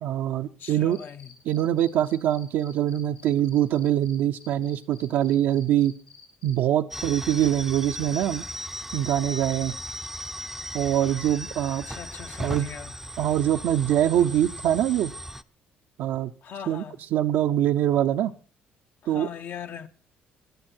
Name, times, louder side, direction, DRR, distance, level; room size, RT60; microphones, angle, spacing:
voice 1, 0.0-1.0 1.5-5.9 6.4-8.4 8.9-9.7 10.7-11.8 12.4-12.7 13.2-15.1 16.0-16.3 16.7-16.8 17.1-18.3 19.1-19.3, right 11 dB, 75° right, 0.6 m, -24 dB
voice 2, 0.6-1.3 11.8-12.9 16.4-17.0 19.0-19.9, left 8 dB, 60° left, 0.9 m, -40 dB
Cricket, 0.9-6.5, left 6 dB, 85° left, 7.1 m, -50 dB
sound 1, 6.9-15.4, equal, 5° right, 0.5 m, -37 dB
17.0 x 11.5 x 4.4 m
cardioid pair, 100°, 4 cm